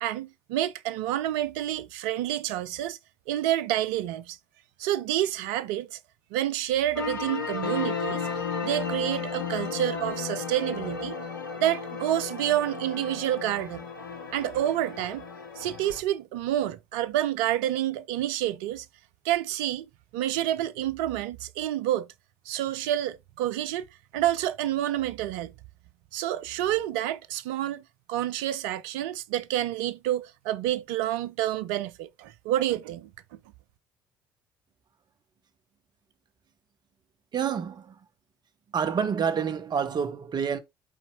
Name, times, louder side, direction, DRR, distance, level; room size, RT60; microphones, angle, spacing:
voice 1, 0.0-3.0 3.3-4.4 4.8-6.0 6.3-8.3 8.6-11.2 11.6-13.9 14.3-15.3 15.6-18.9 19.2-19.9 20.1-22.1 22.5-23.9 24.1-25.5 26.1-27.8 28.1-33.1, right 13 dB, 70° right, 0.5 m, -28 dB
sound 1, 7.0-16.0, left 5 dB, 90° left, 0.8 m, -34 dB
voice 2, 37.3-38.0 38.7-40.6, right 7 dB, 40° right, 1.0 m, -28 dB
12.5 x 4.2 x 2.5 m
hypercardioid pair, 55°, 11 cm